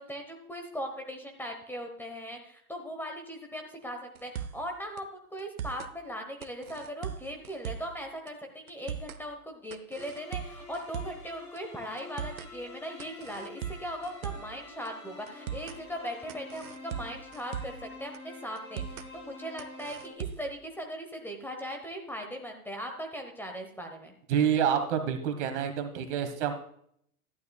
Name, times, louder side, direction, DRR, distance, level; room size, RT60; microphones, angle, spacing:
voice 1, 0.0-24.1, equal, 5° left, 3 dB, 1.1 m, -39 dB
sound 1, 4.2-4.7 5.0-5.1 5.4-5.9 6.4-8.0 8.3-8.4 8.7-9.2 9.7-11.3 11.6-11.7 12.0-12.5 13.0-14.6 14.9-15.0 15.3-15.8 16.3-17.9 18.1-18.2 18.6-19.1 19.6-20.6, right 8 dB, 75° right, 0.8 m, -39 dB
sound 2, 10.0-20.1, left 2 dB, 70° left, 4.1 m, -48 dB
voice 2, 24.3-26.5, right 8 dB, 50° right, 7 dB, 1.7 m, -27 dB
12.0 x 11.0 x 2.3 m, 0.67 s
hypercardioid pair, 115°, 44 cm